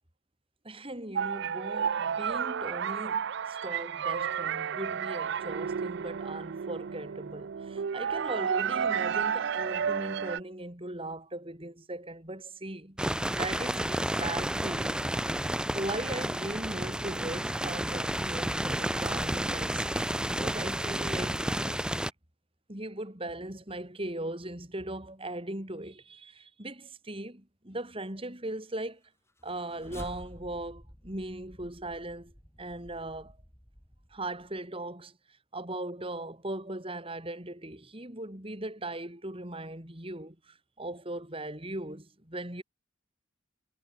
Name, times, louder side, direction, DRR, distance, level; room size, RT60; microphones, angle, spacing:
voice 1, 0.6-13.0 13.3-15.0 15.7-21.9 22.7-29.0 29.4-32.3 32.6-33.4 34.1-35.1 35.5-42.6, right 1 dB, 25° right, 3.6 m, -39 dB
sound 1, 1.1-10.4, right 7 dB, 55° right, 0.4 m, -32 dB
sound 2, 13.0-22.1, right 1 dB, 5° right, 0.9 m, -31 dB
sound 3, 29.3-34.6, equal, 15° left, 7.1 m, -50 dB
head